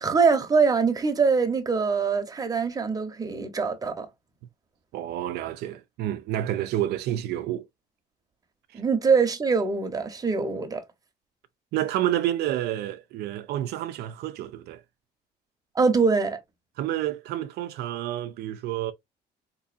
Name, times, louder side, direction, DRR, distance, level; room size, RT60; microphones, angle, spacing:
voice 1, 0.0-4.1 8.7-10.8 15.7-16.4, right 5 dB, 20° right, 0.9 m, -23 dB
voice 2, 4.9-7.7 8.7-8.8 11.7-14.8 16.8-18.9, right 13 dB, 75° right, 0.4 m, -29 dB
3.7 x 3.0 x 2.5 m
cardioid pair, 110°, 17 cm